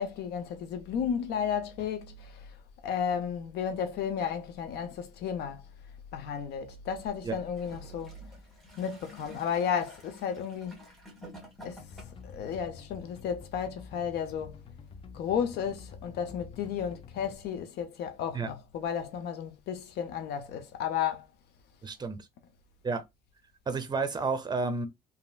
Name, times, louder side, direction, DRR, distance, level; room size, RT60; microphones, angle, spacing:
voice 1, 0.0-2.6 2.8-5.6 6.1-8.2 8.8-10.8 11.6-11.8 12.2-14.6 15.1-21.3, left 7 dB, 75° left, 0.6 m, -33 dB
Gurgling / Toilet flush, 7.5-12.4 13.2-13.3, equal, ahead, 1.5 m, -50 dB
sound 1, 11.8-17.4, left 6 dB, 35° left, 0.4 m, -48 dB
voice 2, 21.8-22.3 22.8-23.0 23.7-24.9, right 4 dB, 25° right, 0.8 m, -31 dB
3.0 x 2.8 x 2.3 m
cardioid pair, 110°, 17 cm